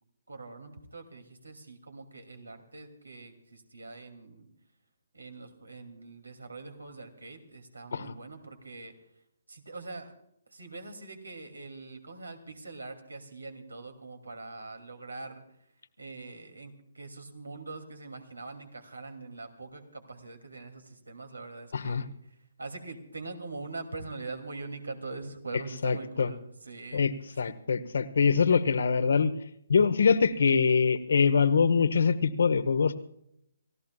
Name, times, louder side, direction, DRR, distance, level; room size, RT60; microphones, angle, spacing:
voice 1, 0.3-4.5 5.1-8.9 9.5-10.1 10.5-15.4 16.0-27.4, right 3 dB, 80° right, 6 dB, 2.6 m, -43 dB
voice 2, 21.7-22.0 25.8-26.3 26.9-29.3 29.7-33.0, left 5 dB, 60° left, 12 dB, 1.1 m, -24 dB
30.0 x 16.0 x 2.4 m, 0.74 s
figure-of-eight pair, 135°, 0 cm